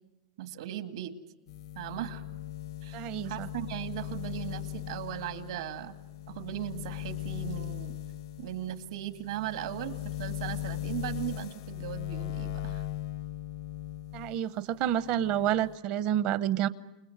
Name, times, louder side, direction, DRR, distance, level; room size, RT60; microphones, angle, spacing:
voice 1, 0.4-1.1 1.8-2.2 2.8-6.0 6.3-7.9 8.4-12.9, right 13 dB, 75° right, 8 dB, 2.2 m, -38 dB
sound 1, 1.5-14.4 14.8-15.8, left 13 dB, 65° left, 0.8 m, -39 dB
voice 2, 2.9-3.5 14.1-16.7, right 11 dB, 40° right, 17 dB, 0.8 m, -29 dB
28.5 x 21.0 x 8.0 m, 1.0 s
supercardioid pair, 155°, 3 cm